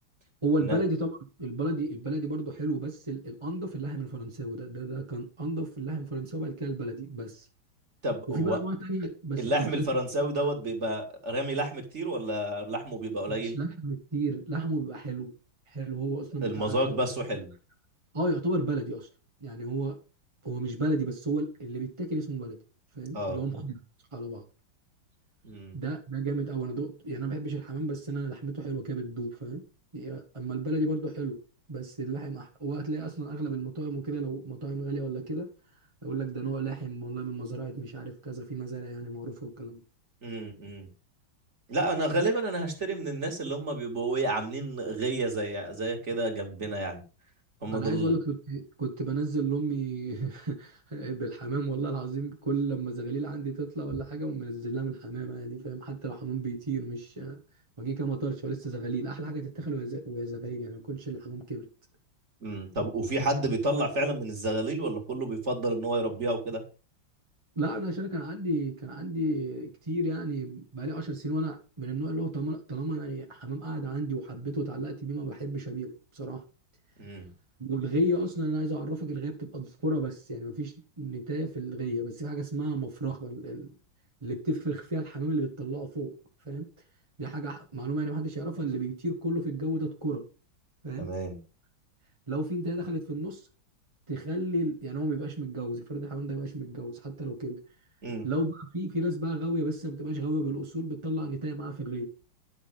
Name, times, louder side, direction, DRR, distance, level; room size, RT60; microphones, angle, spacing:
voice 1, 0.4-7.5 8.3-9.9 13.3-15.3 15.7-17.0 18.1-19.1 19.4-20.0 20.4-22.6 22.9-23.8 24.1-24.4 25.7-29.6 29.9-31.4 31.7-35.5 36.0-39.8 47.7-57.4 57.8-61.7 67.5-76.4 77.6-83.7 84.2-86.1 86.4-86.7 87.2-90.3 90.8-91.1 92.3-93.4 94.1-97.6 98.2-102.0, right 2 dB, 15° right, 1 dB, 1.3 m, -32 dB
voice 2, 8.0-8.6 9.4-13.6 16.4-17.5 23.1-23.4 25.4-25.8 40.2-40.9 41.7-47.0 47.6-48.1 62.4-66.6 77.0-77.3 91.0-91.4 98.0-98.3, right 1 dB, 35° right, 2 dB, 2.6 m, -30 dB
11.0 x 6.2 x 5.4 m, 0.34 s
omnidirectional pair, 2.2 m